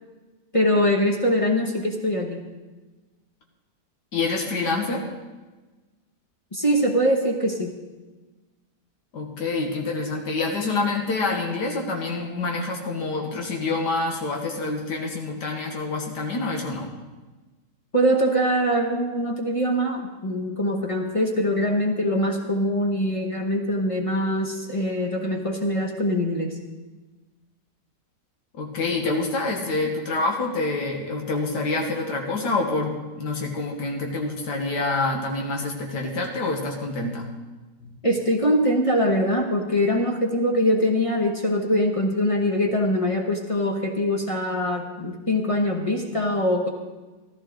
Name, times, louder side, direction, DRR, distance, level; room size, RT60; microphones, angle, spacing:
voice 1, 0.5-2.4 6.5-7.7 17.9-26.6 38.0-46.7, equal, 25° left, 1 dB, 1.0 m, -23 dB
voice 2, 4.1-5.0 9.1-16.9 28.5-37.3 37.8-37.9, left 3 dB, 80° left, 1 dB, 2.0 m, -27 dB
14.5 x 13.5 x 3.9 m, 1.2 s
omnidirectional pair, 1.8 m